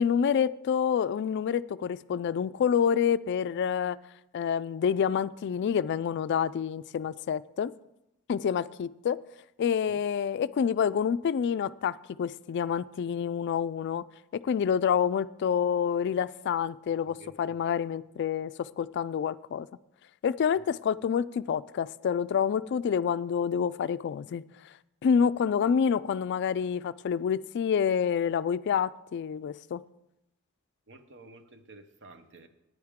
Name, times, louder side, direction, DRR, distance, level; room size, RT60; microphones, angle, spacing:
voice 1, 0.0-4.0 4.3-7.7 8.3-9.2 9.6-14.0 14.3-19.7 20.2-24.7 25.0-29.8, left 7 dB, 55° left, 0.3 m, -28 dB
voice 2, 17.1-17.9 20.5-20.7 30.9-32.5, right 2 dB, 60° right, 1.0 m, -52 dB
15.0 x 9.6 x 3.6 m
head